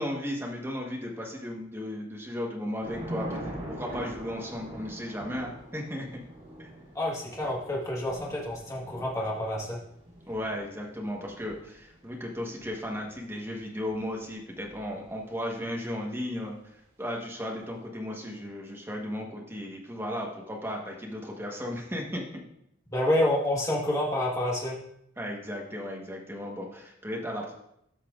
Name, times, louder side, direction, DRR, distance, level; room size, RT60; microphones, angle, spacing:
voice 1, 0.0-6.2 6.6-6.7 10.3-22.3 25.2-27.5, left 1 dB, 10° right, -1 dB, 1.2 m, -35 dB
Thunder / Rain, 2.8-15.3, right 1 dB, 35° right, 3.0 m, -43 dB
voice 2, 6.9-9.8 22.9-24.8, left 1 dB, 15° left, -3 dB, 1.4 m, -28 dB
13.5 x 5.8 x 2.5 m, 0.75 s
head